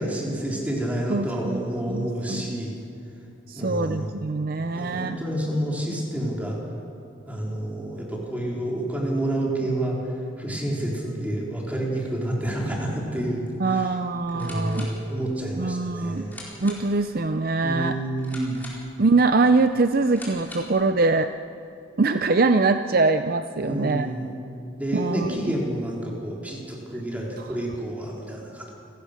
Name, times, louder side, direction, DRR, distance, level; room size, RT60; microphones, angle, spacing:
voice 1, 0.0-2.7 3.6-4.1 4.7-6.6 7.3-10.0 10.4-14.0 14.3-16.3 17.6-18.6 23.6-24.3 24.8-28.7, right 1 dB, 5° right, -3 dB, 3.8 m, -29 dB
voice 2, 1.1-2.6 3.5-5.2 13.6-14.9 15.6-16.2 16.6-18.0 19.0-21.3 22.0-24.1 24.9-25.4, right 3 dB, 45° right, 9 dB, 0.5 m, -23 dB
sound 1, 14.1-20.9, left 1 dB, 10° left, 4.4 m, -45 dB
29.0 x 16.0 x 6.6 m, 2.8 s
head